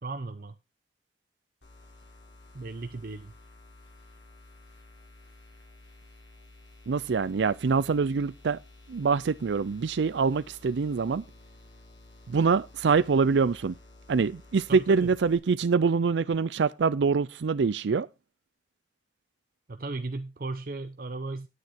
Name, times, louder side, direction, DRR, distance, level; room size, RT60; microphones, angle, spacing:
voice 1, 0.0-0.6 2.5-3.3 14.7-15.1 19.7-21.5, right 3 dB, 50° right, 0.7 m, -36 dB
sound 1, 1.6-15.4, left 2 dB, 80° left, 4.4 m, -53 dB
voice 2, 6.9-8.6 8.9-11.2 12.3-13.7 14.1-18.1, right 5 dB, 85° right, 0.5 m, -25 dB
9.5 x 9.4 x 4.2 m
head